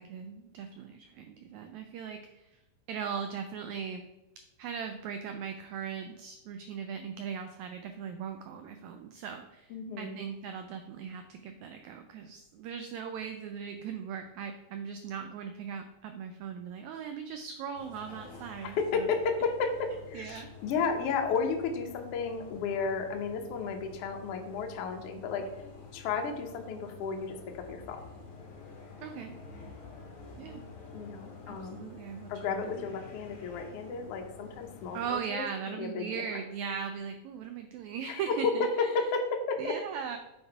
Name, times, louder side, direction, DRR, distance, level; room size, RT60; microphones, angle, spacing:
voice 1, 0.0-2.5 2.9-4.0 4.6-19.1 20.1-20.5 29.0-29.3 30.4-30.6 31.5-32.8 34.9-39.0 39.6-40.2, right 7 dB, 90° right, 6 dB, 1.6 m, -39 dB
voice 2, 9.7-10.2 18.6-25.5 25.9-28.0 30.9-31.9 32.3-36.4 38.1-39.8, left 5 dB, 75° left, 4 dB, 1.4 m, -33 dB
sound 1, 17.7-35.1, left 5 dB, 60° left, 0.8 m, -49 dB
6.9 x 4.2 x 4.7 m, 0.94 s
omnidirectional pair, 3.8 m